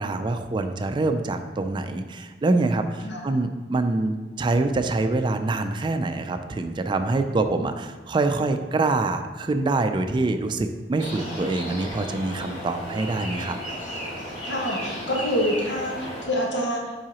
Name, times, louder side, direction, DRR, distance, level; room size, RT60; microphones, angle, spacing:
voice 1, 0.0-13.6, right 2 dB, 25° right, 7 dB, 0.3 m, -25 dB
sound 1, 11.0-16.2, equal, 35° left, 2.0 m, -34 dB
voice 2, 14.4-16.9, equal, 85° left, -2 dB, 1.3 m, -26 dB
7.5 x 4.8 x 2.9 m, 1.3 s
head